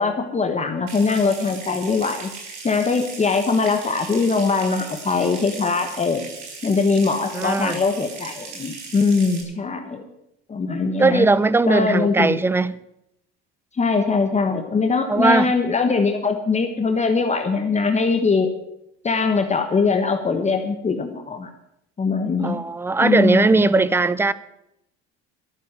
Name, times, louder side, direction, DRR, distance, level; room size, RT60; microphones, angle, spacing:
voice 1, 0.0-2.3 2.6-6.3 6.6-10.1 10.5-11.2 11.7-12.4 13.7-18.5 19.0-21.5 22.0-22.6 23.0-23.8, left 4 dB, 20° left, 6 dB, 1.3 m, -21 dB
Water tap faucet / Sink (filling or washing) / Trickle dribble, 0.9-9.4, right 4 dB, 90° right, 4.7 m, -38 dB
voice 2, 7.3-7.8 11.0-12.8 15.1-15.5 22.4-24.3, right 3 dB, 10° right, 18 dB, 0.5 m, -19 dB
13.0 x 6.9 x 9.7 m, 0.81 s
cardioid pair, 115°, 30 cm